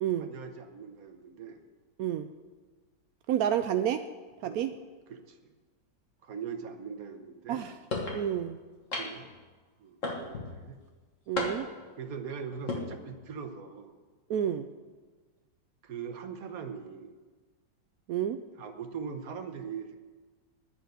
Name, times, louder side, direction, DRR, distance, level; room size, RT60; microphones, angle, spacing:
voice 1, 0.2-1.6 4.4-4.6 5.1-5.5 6.2-7.6 9.0-9.2 9.8-10.8 12.0-13.9 15.8-17.1 18.6-19.9, right 6 dB, 55° right, 7 dB, 1.3 m, -41 dB
voice 2, 3.3-4.0 4.4-4.7 7.5-7.7 8.1-8.6 11.3-11.7 14.3-14.7 18.1-18.4, right 10 dB, 75° right, 8 dB, 0.8 m, -29 dB
sound 1, 7.9-8.2 8.9-9.3 10.0-10.5 11.4-11.8 12.5-12.8, left 2 dB, 45° left, 1.7 m, -33 dB
10.5 x 6.5 x 9.2 m, 1.4 s
omnidirectional pair, 2.0 m